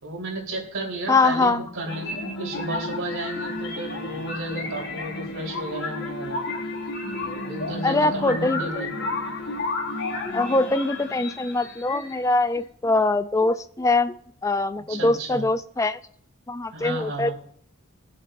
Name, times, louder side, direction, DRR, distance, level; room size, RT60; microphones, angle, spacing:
voice 1, 0.0-6.4 7.4-8.9 14.9-15.4 16.7-17.3, right 1 dB, 75° right, -3 dB, 3.6 m, -33 dB
voice 2, 1.1-1.7 7.8-8.8 10.3-14.2 14.4-16.0 16.5-17.3, left 2 dB, 15° left, 12 dB, 0.3 m, -23 dB
sound 1, 1.9-12.5, left 2 dB, 50° left, 1.2 m, -32 dB
21.5 x 7.5 x 2.5 m, 0.63 s
head